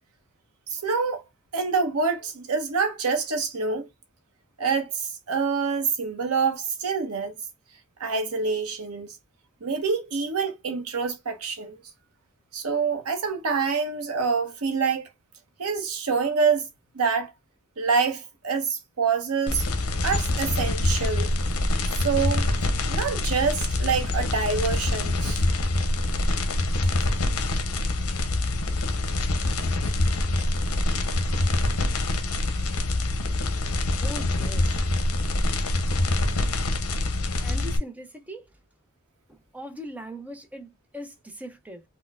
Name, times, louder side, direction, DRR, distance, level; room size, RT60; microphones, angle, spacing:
voice 1, 0.7-1.2 1.5-3.9 4.6-7.4 8.0-9.1 9.6-11.8 12.5-15.1 15.6-16.7 16.9-17.3 17.8-19.7 20.0-21.3 21.9-22.5 22.8-25.4, right 5 dB, 85° right, 0.8 m, -26 dB
sound 1, 19.5-37.8, left 2 dB, 80° left, 0.7 m, -25 dB
voice 2, 34.0-34.8 37.4-38.5 39.3-41.8, equal, 5° right, 0.5 m, -40 dB
4.3 x 2.1 x 2.3 m
head